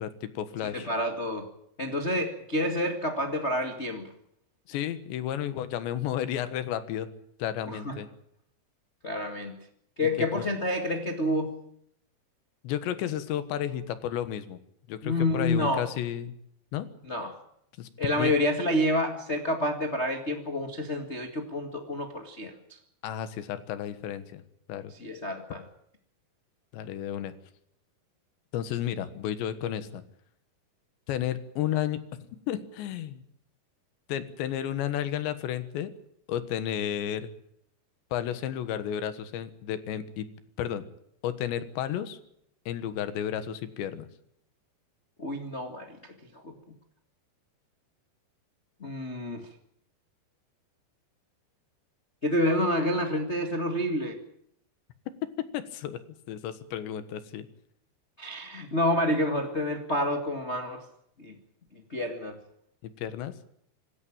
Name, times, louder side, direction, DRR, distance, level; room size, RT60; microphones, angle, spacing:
voice 1, 0.0-0.9 4.7-7.1 7.4-8.1 10.0-10.5 12.6-14.6 14.9-16.3 16.7-16.9 17.8-17.9 18.2-18.3 23.0-24.4 24.7-24.9 26.7-27.3 28.5-30.0 31.1-32.0 32.5-33.2 34.1-35.9 36.3-37.3 38.1-40.3 40.6-40.8 41.2-42.2 42.7-44.1 55.4-56.0 56.3-57.5 62.8-63.3, left 10 dB, 85° left, 12 dB, 3.7 m, -32 dB
voice 2, 0.7-1.5 1.8-4.1 7.7-7.9 9.0-9.5 10.0-11.5 15.0-15.8 17.1-17.4 18.0-22.5 25.0-25.6 45.2-46.0 46.3-46.5 48.8-49.4 52.2-54.2 58.2-60.8 61.2-61.3 61.9-62.4, left 1 dB, 40° left, 4 dB, 0.9 m, -28 dB
26.5 x 13.5 x 8.8 m, 0.71 s
omnidirectional pair, 5.0 m